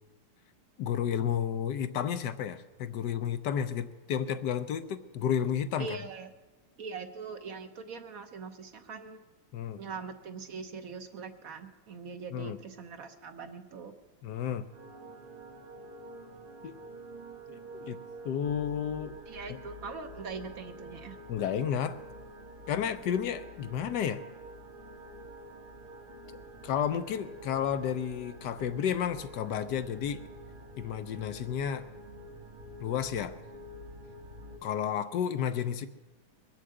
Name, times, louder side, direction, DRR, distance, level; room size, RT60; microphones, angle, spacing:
voice 1, 0.8-6.0 9.5-9.8 12.3-12.6 14.2-14.7 16.6-16.7 17.5-18.0 18.2-19.1 19.5-19.6 21.3-22.0 22.7-24.2 26.6-30.2 30.8-31.8 32.8-33.4 34.6-35.9, left 8 dB, 70° left, 11 dB, 1.1 m, -32 dB
voice 2, 5.8-6.3 6.8-9.2 9.8-13.9 19.3-21.2, right 5 dB, 55° right, 8 dB, 1.1 m, -42 dB
sound 1, 14.7-34.6, right 1 dB, 90° right, 3.2 m, -47 dB
22.0 x 7.4 x 7.9 m, 1.2 s
omnidirectional pair, 2.3 m